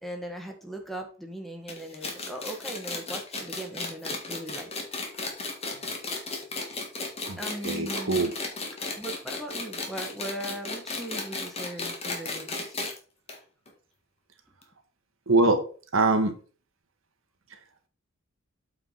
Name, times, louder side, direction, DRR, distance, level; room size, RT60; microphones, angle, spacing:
voice 1, 0.0-4.7 7.4-8.2 9.0-12.7, right 1 dB, ahead, 3 dB, 1.7 m, -39 dB
sound 1, 1.7-13.0 13.3-13.4 13.7-13.8 14.6-14.7, left 3 dB, 30° left, 1.9 m, -34 dB
voice 2, 7.6-8.3 15.3-15.6 15.9-16.3, right 2 dB, 65° right, 7 dB, 1.6 m, -23 dB
8.3 x 4.9 x 5.6 m, 0.38 s
head